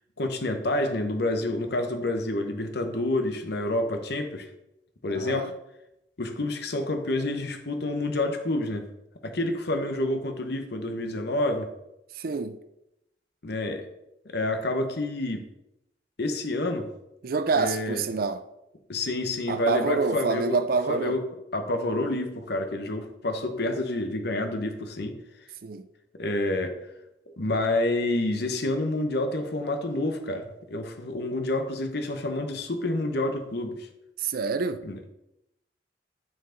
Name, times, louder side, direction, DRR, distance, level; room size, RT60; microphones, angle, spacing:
voice 1, 0.2-4.5 5.0-5.5 6.2-8.9 9.2-11.7 13.4-13.9 14.3-15.5 16.2-16.9 17.5-18.0 18.9-20.6 20.9-21.2 21.5-25.2 26.2-26.8 27.4-33.9 34.8-35.0, left 2 dB, 60° left, 0.9 m, -28 dB
voice 2, 5.1-5.5 12.1-12.6 17.2-18.4 19.5-21.2 25.6-25.9 34.2-34.8, right 4 dB, 55° right, 0.5 m, -27 dB
9.2 x 4.5 x 3.8 m
head